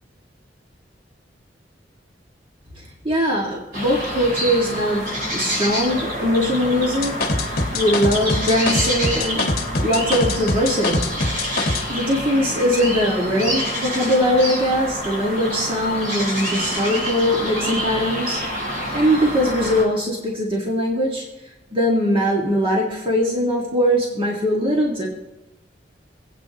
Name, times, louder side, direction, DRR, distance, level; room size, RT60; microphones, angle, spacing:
voice 1, 2.8-9.5 9.8-11.1 11.9-21.3 21.7-25.1, equal, 30° right, -2 dB, 1.9 m, -21 dB
sound 1, 3.7-19.8, equal, 50° right, 5.3 m, -27 dB
sound 2, 7.0-11.9, left 2 dB, 55° left, 1.4 m, -23 dB
26.5 x 8.9 x 2.9 m, 1.1 s
head